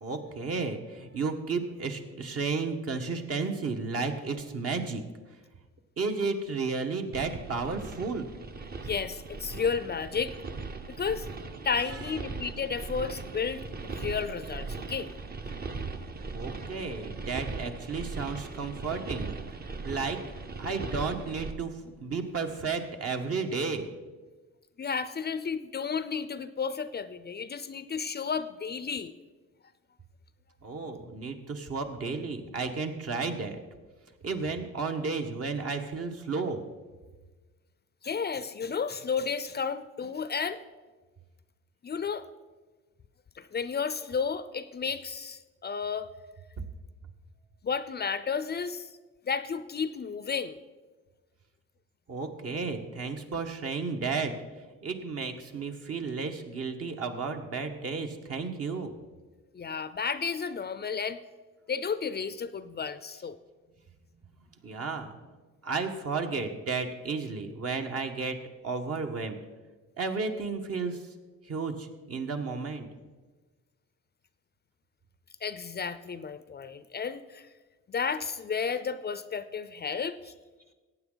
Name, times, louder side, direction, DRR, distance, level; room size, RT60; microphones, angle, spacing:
voice 1, 0.0-5.0 6.0-8.3 11.8-12.2 16.3-19.4 19.8-20.2 20.6-23.8 30.6-33.6 34.2-36.6 52.1-54.3 54.8-58.9 64.6-65.2 65.6-68.4 68.6-69.4 70.0-71.0 71.4-72.9, right 4 dB, 50° right, 4 dB, 1.4 m, -33 dB
sound 1, 7.1-21.5, right 4 dB, 30° right, 0.9 m, -39 dB
voice 2, 8.8-10.3 10.9-11.3 11.6-15.1 24.8-29.1 38.0-40.6 41.8-42.3 43.4-46.1 47.6-48.9 49.2-50.6 59.5-61.2 61.7-63.4 75.4-77.5 77.9-80.3, left 6 dB, 35° left, 13 dB, 0.5 m, -32 dB
15.0 x 9.0 x 4.0 m, 1.3 s
cardioid pair, 90°, 30 cm